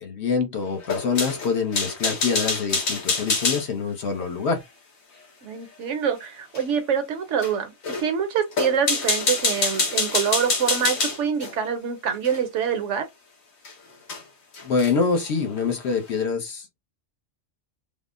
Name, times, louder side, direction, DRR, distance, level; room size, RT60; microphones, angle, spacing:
voice 1, 0.0-4.6 14.6-16.8, left 5 dB, 60° left, 0.9 m, -25 dB
sound 1, 0.8-3.7 6.5-6.6 7.4-7.5 7.8-8.1 8.5-11.5 12.2-12.4 13.6-13.7 14.1-14.2 14.5-15.0, left 4 dB, 80° left, 1.4 m, -25 dB
voice 2, 5.4-13.1, right 7 dB, 70° right, 0.9 m, -25 dB
3.5 x 2.0 x 2.4 m
omnidirectional pair, 1.4 m